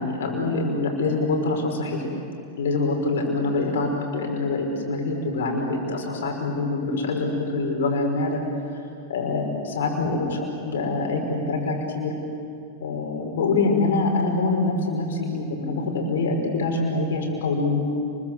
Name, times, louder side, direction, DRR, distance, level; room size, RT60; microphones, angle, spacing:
voice 1, 0.0-2.1 2.6-8.4 9.1-12.1 12.8-17.8, left 3 dB, 75° left, 1 dB, 5.8 m, -25 dB
30.0 x 22.5 x 8.0 m, 2.6 s
hypercardioid pair, 100°, 0 cm